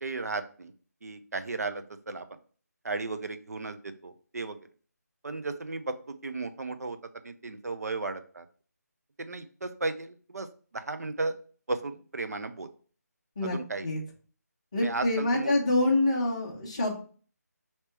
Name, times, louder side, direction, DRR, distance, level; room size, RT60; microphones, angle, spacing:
voice 1, 0.0-0.7 1.0-2.2 2.8-4.6 5.2-6.0 6.2-7.0 7.2-8.5 9.2-10.5 10.7-11.3 11.7-12.7 13.4-13.9 14.8-15.5, right 3 dB, 65° right, 9 dB, 0.6 m, -34 dB
voice 2, 14.7-17.0, left 2 dB, 20° left, -2 dB, 0.7 m, -26 dB
3.4 x 2.9 x 4.5 m, 0.41 s
figure-of-eight pair, 175°, 9 cm